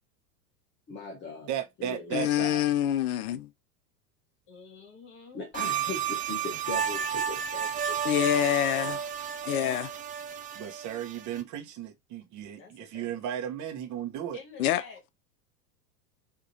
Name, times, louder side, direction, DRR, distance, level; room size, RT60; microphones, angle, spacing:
voice 1, 0.9-1.5 1.8-2.3 5.3-8.4 8.7-9.1 9.4-9.5, left 3 dB, 25° left, 1.1 m, -40 dB
voice 2, 1.5-2.6 10.5-14.4, right 10 dB, 40° right, 1.2 m, -35 dB
voice 3, 2.1-3.5 8.0-9.0 9.4-9.9 14.6-14.8, left 12 dB, 65° left, 0.7 m, -26 dB
voice 4, 4.5-5.5 12.6-13.2 14.3-15.1, left 5 dB, 45° left, 2.2 m, -49 dB
sound 1, 5.5-11.4, right 8 dB, 20° right, 0.5 m, -32 dB
5.2 x 2.9 x 2.8 m
hypercardioid pair, 95°, 47 cm